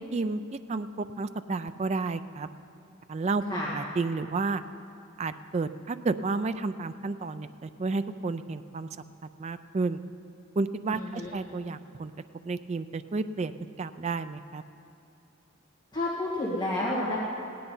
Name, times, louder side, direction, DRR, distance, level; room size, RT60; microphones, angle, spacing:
voice 1, 0.0-2.5 3.1-4.6 5.2-8.9 9.4-10.0 10.6-12.1 12.5-13.5 13.8-14.6, right 3 dB, 30° right, 11 dB, 0.3 m, -31 dB
voice 2, 10.9-11.3 15.9-17.2, left 1 dB, 20° left, -6 dB, 1.7 m, -30 dB
17.5 x 10.0 x 5.5 m, 2.7 s
head